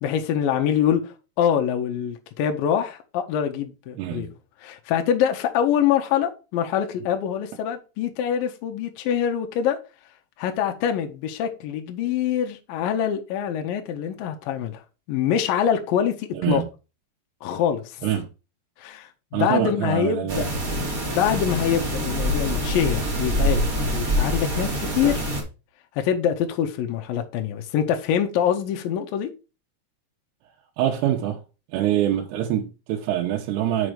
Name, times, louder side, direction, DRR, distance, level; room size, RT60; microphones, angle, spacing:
voice 1, 0.0-4.3 4.6-9.8 10.4-16.6 17.4-18.1 18.8-20.5 21.1-25.3 26.0-29.3, left 9 dB, 75° left, 2.2 m, -25 dB
voice 2, 4.0-4.3 16.3-16.7 18.0-18.3 19.3-20.5 30.8-31.4 31.7-33.9, right 11 dB, 85° right, 3.0 m, -24 dB
sound 1, 20.3-25.4, equal, 25° right, 2.0 m, -25 dB
6.0 x 5.1 x 4.8 m
omnidirectional pair, 4.8 m